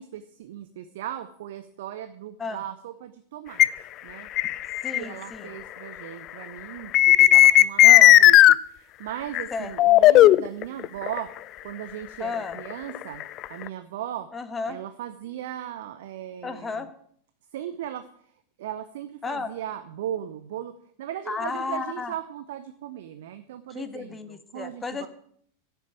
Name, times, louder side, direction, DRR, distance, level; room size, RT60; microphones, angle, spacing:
voice 1, 0.0-3.7 4.0-4.3 4.9-11.3 11.6-13.2 13.5-14.3 14.7-16.9 17.5-18.0 18.6-25.1, right 11 dB, 55° right, 11 dB, 0.8 m, -37 dB
sound 1, 3.6-3.7 4.4-5.0 6.9-8.5 9.3-9.4 9.8-11.2 12.3-13.7, left 14 dB, 35° left, 0.4 m, -14 dB
voice 2, 4.8-5.5 7.8-8.2 9.5-9.9 12.2-12.6 14.3-14.8 16.4-16.9 19.2-19.5 21.3-22.1 23.7-25.1, left 4 dB, 15° left, 10 dB, 1.4 m, -33 dB
11.0 x 8.2 x 9.1 m, 0.63 s
figure-of-eight pair, 90°, 0 cm